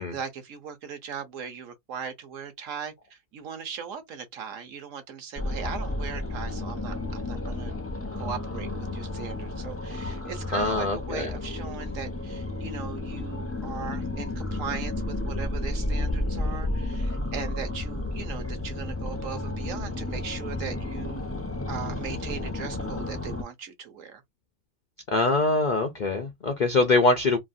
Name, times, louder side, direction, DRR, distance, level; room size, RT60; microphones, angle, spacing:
voice 1, 0.0-7.7 8.1-24.2, right 7 dB, 65° right, 1.1 m, -39 dB
sound 1, 5.4-23.4, left 2 dB, 20° left, 0.4 m, -32 dB
voice 2, 10.5-11.3 25.1-27.4, left 3 dB, 85° left, 0.4 m, -23 dB
3.0 x 2.4 x 2.5 m
omnidirectional pair, 1.5 m